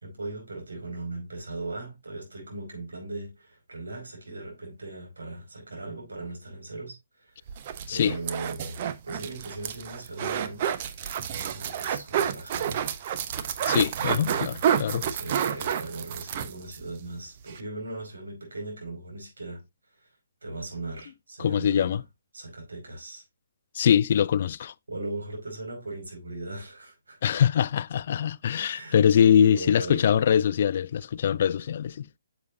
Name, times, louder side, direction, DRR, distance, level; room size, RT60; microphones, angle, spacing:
voice 1, 0.0-7.4 7.9-10.7 11.3-12.8 14.0-14.7 14.9-19.6 20.0-20.1 20.4-22.0 22.3-23.2 24.9-27.4 28.7-29.0 29.4-30.0, right 2 dB, 75° right, 5.3 m, -38 dB
sound 1, 7.5-16.8 17.1-17.2 17.5-17.6, right 9 dB, 40° right, 0.9 m, -29 dB
voice 2, 13.6-15.1 21.4-22.0 23.7-24.7 27.2-32.1, left 8 dB, 50° left, 0.4 m, -23 dB
9.5 x 7.1 x 2.7 m
figure-of-eight pair, 135°, 0 cm